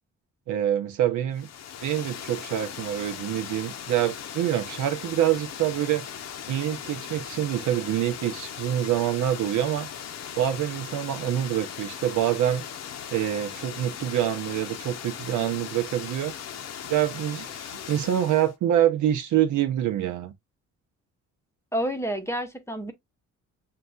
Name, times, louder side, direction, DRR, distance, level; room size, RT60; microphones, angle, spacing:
voice 1, 0.5-1.5 1.8-6.0 6.5-9.9 10.4-12.7 13.1-16.3 16.9-20.3, right 11 dB, 75° right, 0.8 m, -26 dB
Water, 1.3-18.5, left 8 dB, 60° left, 0.7 m, -38 dB
voice 2, 21.7-22.9, equal, 10° left, 0.8 m, -29 dB
6.7 x 2.3 x 2.4 m
cardioid pair, 90°, 30 cm